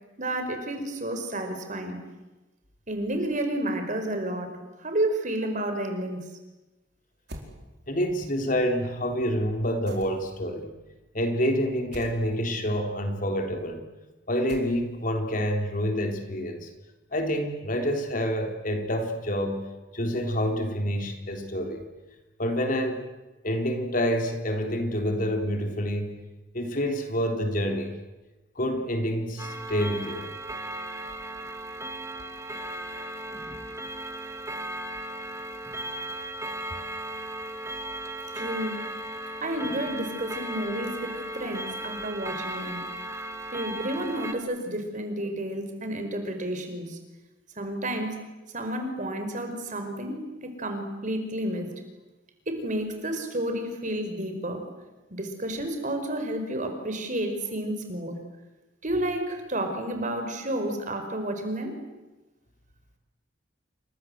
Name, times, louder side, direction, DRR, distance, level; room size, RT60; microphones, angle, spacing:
voice 1, 0.2-2.0 2.9-6.2 38.3-38.8 39.4-42.8 43.5-47.0 47.6-48.2 48.5-51.7 52.5-54.7 55.1-58.2 58.8-61.8, right 1 dB, 40° right, 6 dB, 5.1 m, -31 dB
sound 1, 7.3-7.5 9.9-10.4 11.9-12.2 14.5-15.0, right 1 dB, 60° right, 4.8 m, -43 dB
voice 2, 7.9-10.7 11.1-13.8 14.3-16.7 17.1-19.6 19.9-21.8 22.4-23.0 23.4-26.2 26.5-27.9 28.6-30.3 36.0-36.1, equal, 45° left, 4 dB, 3.6 m, -27 dB
Clock, 29.4-44.3, right 1 dB, 15° right, 2.1 m, -36 dB
29.0 x 25.5 x 8.0 m, 1.1 s
head